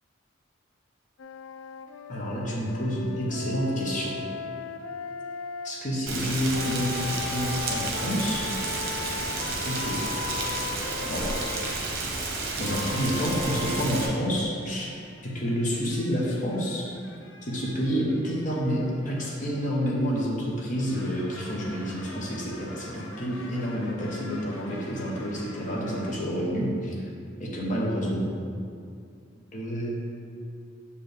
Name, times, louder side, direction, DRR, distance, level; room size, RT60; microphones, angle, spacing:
sound 1, 1.2-5.7 6.4-11.8 12.6-13.9, left 6 dB, 90° left, 0.3 m, -37 dB
voice 1, 2.1-4.1 5.6-8.5 9.6-10.2 11.1-11.4 12.6-14.9 15.2-16.9 17.4-27.0 27.4-28.3 29.5-29.9, equal, 40° left, -3 dB, 1.0 m, -29 dB
Rain, 6.1-14.1, right 3 dB, 50° right, 0.9 m, -31 dB
sound 2, 13.4-20.4 20.8-26.2, left 2 dB, 70° left, 0.7 m, -48 dB
6.9 x 4.5 x 3.4 m, 2.4 s
head